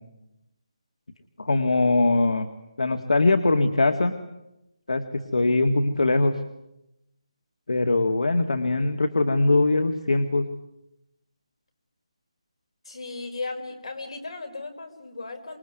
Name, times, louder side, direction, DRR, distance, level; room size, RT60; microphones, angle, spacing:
voice 1, 1.4-2.5 2.8-4.1 4.9-5.0 5.3-6.3 7.7-10.5, left 2 dB, 80° left, 7 dB, 2.1 m, -21 dB
voice 2, 12.9-15.6, left 3 dB, 65° left, 6 dB, 5.4 m, -36 dB
26.5 x 21.5 x 9.5 m, 0.89 s
hypercardioid pair, 170°, 3 cm